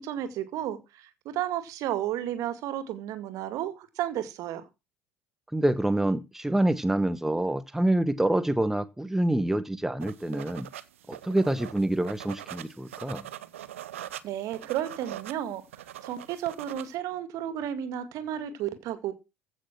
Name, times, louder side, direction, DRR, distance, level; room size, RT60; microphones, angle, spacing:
voice 1, 0.0-4.6 14.2-19.1, right 11 dB, 50° right, 2.2 m, -33 dB
voice 2, 5.5-10.7 11.1-13.3, right 1 dB, 5° right, 1.0 m, -26 dB
sound 1, 10.0-16.9, right 12 dB, 70° right, 0.8 m, -42 dB
15.5 x 6.4 x 6.1 m
figure-of-eight pair, 65°, 7 cm